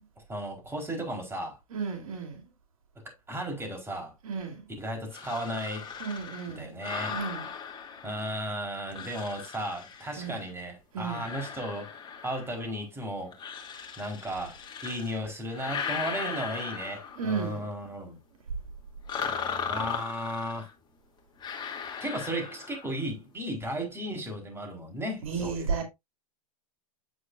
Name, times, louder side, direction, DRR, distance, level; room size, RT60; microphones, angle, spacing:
voice 1, 0.3-1.6 3.3-4.1 4.8-5.9 6.5-7.2 8.0-11.9 12.2-13.3 14.0-18.2 19.7-20.7 22.0-25.8, equal, 15° right, 4.2 m, -35 dB
voice 2, 1.7-2.4 4.2-4.7 6.0-6.7 7.1-7.5 10.2-10.4 10.9-11.3 17.2-17.7 25.2-25.8, right 5 dB, 75° right, 2.7 m, -33 dB
sound 1, 5.1-8.5 8.9-10.5 11.0-12.7 13.3-15.2 15.5-17.4 19.1-20.7 21.4-23.0, left 6 dB, 25° left, 2.7 m, -38 dB
9.5 x 7.8 x 2.6 m
hypercardioid pair, 100°, 18 cm